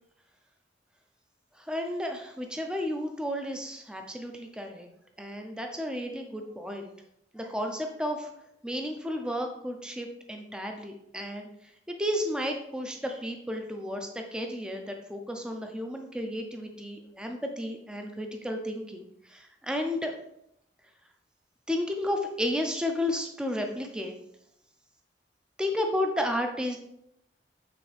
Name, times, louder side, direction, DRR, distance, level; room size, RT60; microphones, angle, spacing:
voice 1, 1.7-4.9 5.2-6.9 7.3-8.3 8.6-11.5 11.9-20.1 21.7-24.1 25.6-26.8, left 1 dB, 5° right, 3 dB, 0.6 m, -32 dB
8.6 x 4.2 x 3.4 m, 0.77 s
head